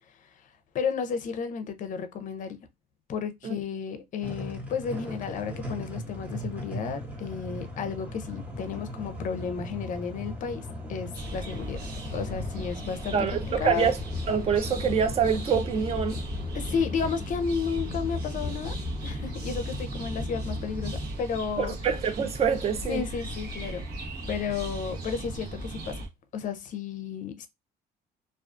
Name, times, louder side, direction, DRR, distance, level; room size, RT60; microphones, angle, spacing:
voice 1, 0.7-2.6 3.1-11.8 12.1-13.9 16.5-18.7 19.0-21.7 22.9-23.8 24.3-26.0 26.3-27.5, left 6 dB, 50° left, 0.5 m, -32 dB
sound 1, 4.2-21.1, left 2 dB, 10° right, 0.8 m, -37 dB
sound 2, 11.1-26.1, right 1 dB, 65° right, 0.9 m, -38 dB
voice 2, 13.1-14.0 14.3-16.2 21.6-23.0, right 7 dB, 35° right, 0.5 m, -25 dB
2.4 x 2.3 x 2.4 m
cardioid pair, 110°, 17 cm